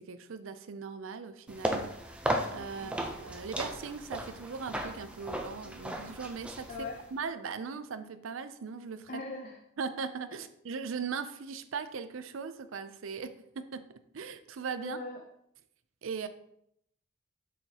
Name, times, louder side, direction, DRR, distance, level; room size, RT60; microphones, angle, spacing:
voice 1, 0.0-1.9 2.5-6.7 7.1-9.2 9.8-15.0 16.0-16.3, right 5 dB, 65° right, 11 dB, 0.5 m, -39 dB
sound 1, 1.5-7.1, right 1 dB, 5° right, 0.5 m, -36 dB
voice 2, 2.7-3.0 6.7-7.0 9.1-9.6 14.8-15.2, left 3 dB, 40° left, 2 dB, 0.6 m, -40 dB
6.9 x 5.8 x 2.9 m, 0.74 s
head